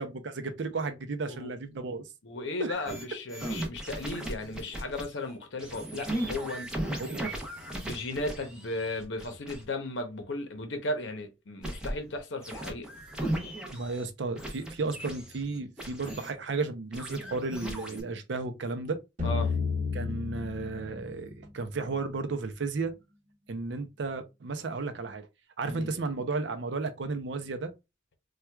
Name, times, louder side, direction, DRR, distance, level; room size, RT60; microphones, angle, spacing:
voice 1, 0.0-2.1 2.6-2.9 7.0-7.4 13.7-19.0 19.9-22.9 23.5-25.3 25.6-27.7, right 3 dB, 65° right, 0.5 m, -33 dB
voice 2, 2.2-6.7 7.8-12.9 19.2-19.5 25.6-25.9, left 2 dB, 70° left, 0.7 m, -35 dB
sound 1, 2.9-3.0 3.3-5.1 5.6-9.6 11.6-12.2 12.4-14.1 14.4-16.3 16.9-18.0, right 1 dB, 5° right, 0.7 m, -37 dB
sound 2, 19.2-22.1, left 5 dB, 40° right, 1.2 m, -32 dB
4.4 x 2.3 x 2.2 m
head